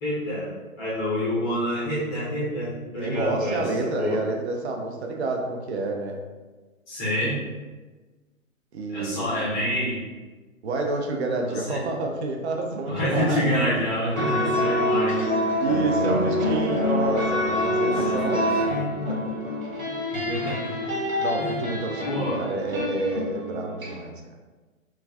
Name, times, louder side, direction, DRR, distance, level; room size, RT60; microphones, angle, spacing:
voice 1, 0.0-3.7 4.0-4.2 6.9-7.4 8.9-10.0 11.5-11.8 12.9-15.5 16.0-16.4 17.9-18.2 18.6-18.8 20.2-20.7 21.4-21.6 22.0-22.4, equal, 10° left, -10 dB, 0.5 m, -27 dB
voice 2, 3.0-6.2 8.7-9.5 10.6-13.4 13.7-13.8 15.6-18.5 19.1-19.3 21.2-24.1, right 3 dB, 55° right, 1 dB, 0.5 m, -29 dB
sound 1, 14.1-23.9, left 1 dB, 85° right, 1.3 m, -26 dB
3.0 x 2.2 x 2.4 m, 1.3 s
figure-of-eight pair, 125°, 41 cm